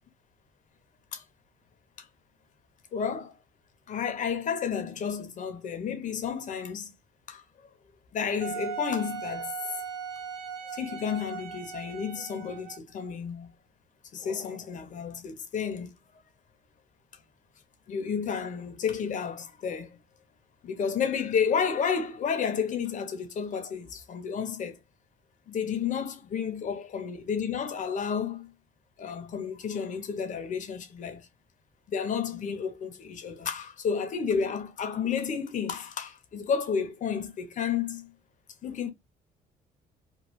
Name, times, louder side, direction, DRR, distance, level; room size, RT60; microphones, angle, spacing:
voice 1, 2.9-3.4 3.9-6.9 7.3-7.7 8.1-9.5 10.7-13.6 14.1-15.9 17.9-20.0 20.6-24.8 25.5-28.5 29.0-31.3 31.9-38.1 38.6-38.9, left 6 dB, 50° left, 0.9 m, -31 dB
Wind instrument woodwind instrument, 8.4-12.9, right 7 dB, 65° right, 1.4 m, -38 dB
3.1 x 2.1 x 3.1 m
cardioid pair, 110°, 17 cm